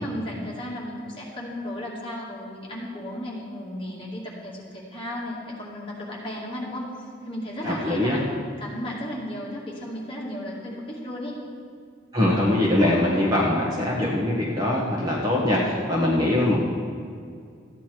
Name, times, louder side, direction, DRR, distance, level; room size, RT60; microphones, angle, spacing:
voice 1, 0.0-6.9 7.2-8.2 8.6-11.3, left 1 dB, 25° left, -5 dB, 2.2 m, -34 dB
voice 2, 7.6-8.2 12.1-16.6, left 1 dB, 20° right, -4 dB, 1.5 m, -22 dB
14.0 x 9.5 x 4.6 m, 2.2 s
head